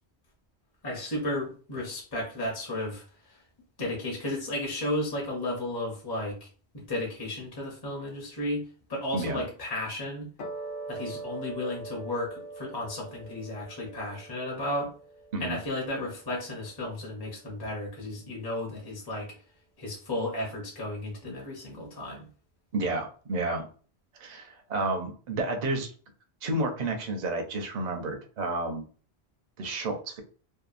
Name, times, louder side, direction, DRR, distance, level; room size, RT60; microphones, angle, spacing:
voice 1, 0.8-3.4 3.8-6.5 6.7-10.3 10.9-14.9 15.4-19.3 19.8-22.3, left 1 dB, 25° left, -3 dB, 0.6 m, -34 dB
sound 1, 10.4-16.9, right 3 dB, 60° left, 0.8 m, -42 dB
voice 2, 22.7-23.7 24.2-25.9 26.4-28.8 29.6-30.2, right 2 dB, 50° right, 4 dB, 0.6 m, -31 dB
2.7 x 2.2 x 2.4 m, 0.40 s
omnidirectional pair, 1.1 m